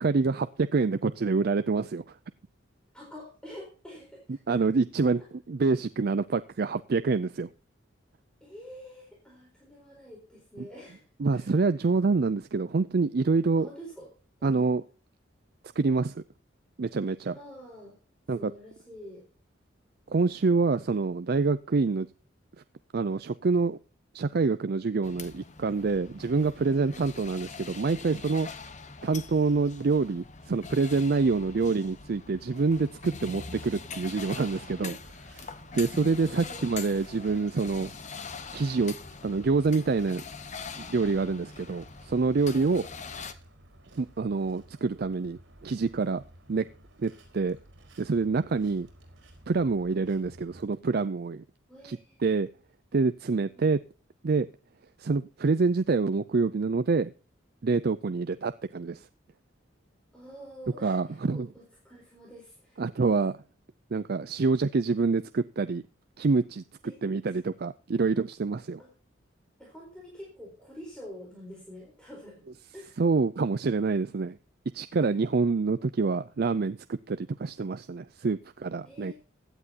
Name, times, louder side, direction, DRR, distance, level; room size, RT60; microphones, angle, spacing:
voice 1, 0.0-2.2 4.5-5.2 5.5-7.5 10.6-10.7 11.2-13.7 14.4-14.8 15.8-16.2 16.8-17.4 18.3-18.5 20.1-22.1 22.9-23.8 24.1-28.5 29.0-34.9 35.7-37.9 38.5-38.9 39.2-40.2 40.8-42.8 44.0-46.2 46.5-46.7 47.0-47.6 48.0-48.9 49.5-51.4 51.8-52.5 52.9-53.8 54.2-54.5 55.0-57.1 57.6-59.1 60.8-61.5 62.8-63.4 63.9-65.8 66.2-66.6 67.0-68.8 73.0-74.4 74.7-79.1, right 4 dB, 50° right, 12 dB, 0.4 m, -26 dB
voice 2, 2.9-4.6 8.4-11.7 13.6-14.1 14.4-14.7 17.3-18.0 18.3-19.2 34.8-35.0 36.2-36.6 42.5-42.9 49.8-50.0 51.7-52.2 53.3-53.8 58.0-58.5 60.1-62.8 66.8-67.0 68.8-68.9 69.6-72.4 72.7-73.0 74.9-75.1 78.8-79.1, equal, 5° left, -3 dB, 4.2 m, -47 dB
sound 1, 25.0-43.3, left 4 dB, 40° left, 1.0 m, -43 dB
sound 2, 33.4-50.6, right 1 dB, 70° right, 4.8 m, -55 dB
16.0 x 9.8 x 2.9 m, 0.36 s
head